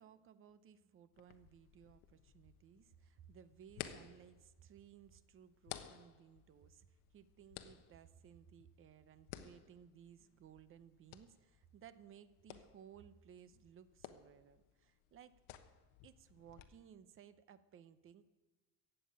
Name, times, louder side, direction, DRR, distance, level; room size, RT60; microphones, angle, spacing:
voice 1, 0.0-15.3 16.0-18.2, right 9 dB, 30° right, 13 dB, 0.7 m, -60 dB
sound 1, 1.1-16.6, left 11 dB, 85° left, 1.2 m, -56 dB
15.5 x 7.6 x 8.6 m, 1.2 s
cardioid pair, 150°, 40 cm